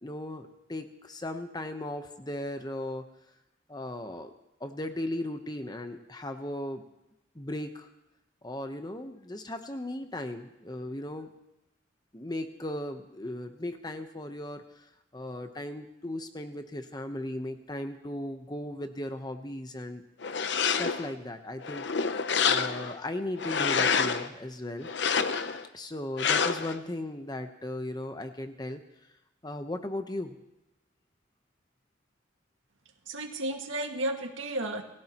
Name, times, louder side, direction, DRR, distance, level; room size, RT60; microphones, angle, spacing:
voice 1, 0.0-3.1 3.7-4.3 4.6-6.8 7.3-7.9 8.4-11.3 12.1-14.9 15.1-20.0 20.6-24.9 25.7-28.8 29.4-30.4, left 1 dB, 20° left, 6 dB, 1.0 m, -37 dB
sound 1, 20.2-21.1 21.6-23.0 23.4-24.3 24.8-25.6 26.2-26.8, left 6 dB, 65° left, 0.7 m, -27 dB
voice 2, 33.1-34.8, right 1 dB, 90° right, 3 dB, 2.0 m, -33 dB
28.0 x 16.5 x 3.0 m, 0.91 s
head